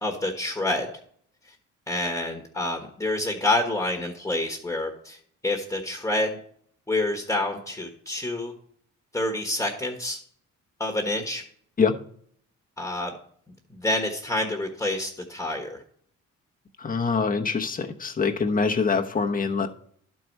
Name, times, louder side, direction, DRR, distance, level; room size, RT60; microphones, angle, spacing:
voice 1, 0.0-0.9 1.4-1.5 1.9-6.4 6.9-8.5 9.1-10.2 10.8-11.4 12.8-13.1 13.7-15.8, left 2 dB, 10° left, 2 dB, 1.4 m, -28 dB
voice 2, 16.8-19.7, left 5 dB, 30° left, 3 dB, 1.0 m, -24 dB
11.5 x 4.7 x 5.4 m, 0.62 s
cardioid pair, 90°, 30 cm